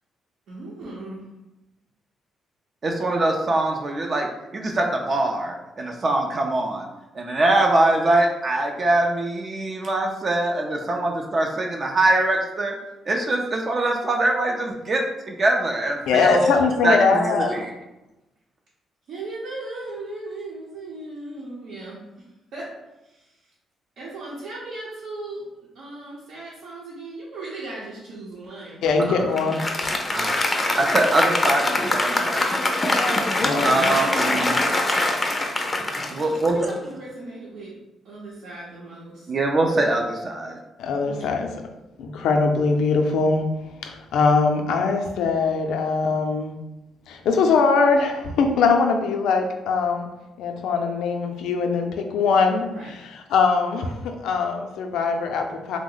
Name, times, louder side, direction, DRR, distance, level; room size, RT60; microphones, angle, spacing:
voice 1, 0.5-1.2 19.1-22.7 23.0-23.5 24.0-25.4 25.7-28.8 36.5-37.7 38.0-39.3 41.0-41.5 48.3-48.7 52.6-52.9, right 2 dB, 75° right, -7 dB, 0.8 m, -37 dB
voice 2, 2.8-6.9 7.1-12.7 13.1-16.5 16.8-17.7 29.1-29.2 30.1-32.9 33.6-34.6 36.1-36.7 39.3-40.6, right 2 dB, 40° right, 1 dB, 0.4 m, -23 dB
voice 3, 16.1-17.7 28.8-29.7 33.4-33.8 40.8-41.5 42.0-43.5 43.8-46.5 47.1-50.1 50.4-52.7 53.3-55.8, left 4 dB, 80° left, 4 dB, 0.4 m, -21 dB
Applause, 29.4-37.0, left 2 dB, 20° left, 0.4 m, -23 dB
2.8 x 2.0 x 3.8 m, 0.97 s
cardioid pair, 90°, 0 cm